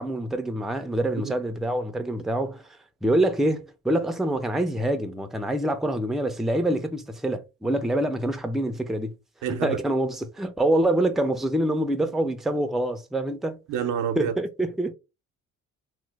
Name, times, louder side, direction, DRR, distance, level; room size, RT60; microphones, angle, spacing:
voice 1, 0.0-2.6 3.0-9.1 9.5-13.6 14.2-14.9, right 1 dB, ahead, 0.4 m, -25 dB
voice 2, 9.4-9.8 13.7-14.3, right 8 dB, 85° right, 0.6 m, -27 dB
3.0 x 2.1 x 3.2 m
cardioid pair, 90°, 30 cm